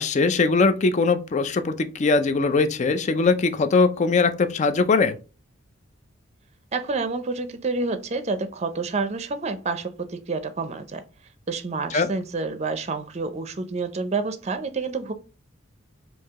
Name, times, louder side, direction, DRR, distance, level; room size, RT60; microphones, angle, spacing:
voice 1, 0.0-5.2 11.9-12.1, left 4 dB, 35° left, 0.4 m, -21 dB
voice 2, 6.7-11.0 11.5-15.1, right 3 dB, 35° right, 0.5 m, -28 dB
4.6 x 2.7 x 3.5 m
head